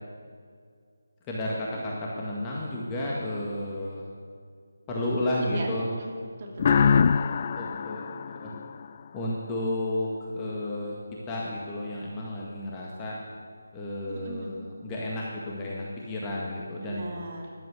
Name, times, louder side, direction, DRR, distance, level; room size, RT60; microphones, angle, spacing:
voice 1, 1.3-4.1 4.9-5.9 7.4-8.5 9.1-11.0 11.3-13.2 13.7-17.1, left 1 dB, 15° left, -4 dB, 1.8 m, -32 dB
voice 2, 5.2-5.7 6.0-6.1 6.4-7.2 14.0-14.6 16.8-17.5, right 2 dB, 35° right, 0 dB, 2.8 m, -39 dB
sound 1, 6.6-9.3, left 6 dB, 35° left, 0.3 m, -24 dB
14.0 x 11.0 x 8.3 m, 2.1 s
figure-of-eight pair, 155°, 0 cm